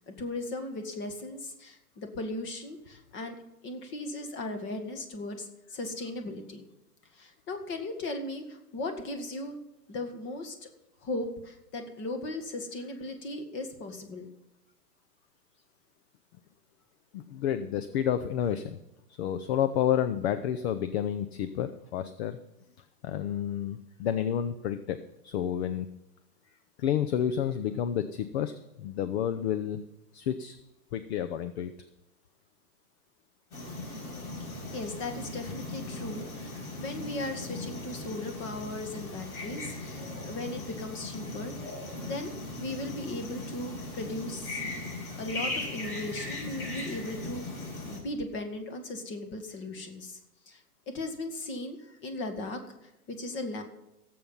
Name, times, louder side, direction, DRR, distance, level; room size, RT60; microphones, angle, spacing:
voice 1, 0.1-3.4 3.6-6.6 7.1-9.6 9.9-10.6 11.0-14.3 34.4-41.7 42.0-42.3 42.6-44.8 45.2-50.2 50.5-53.6, left 2 dB, 25° left, 6 dB, 1.9 m, -37 dB
voice 2, 17.1-18.8 19.2-22.4 23.0-25.0 25.2-25.9 26.8-28.5 28.8-29.8 30.1-30.6 30.9-31.7, left 9 dB, 45° left, 11 dB, 0.8 m, -30 dB
sound 1, 33.5-48.0, left 2 dB, 70° left, 5.8 m, -38 dB
17.0 x 7.7 x 5.6 m, 0.92 s
hypercardioid pair, 130°, 46 cm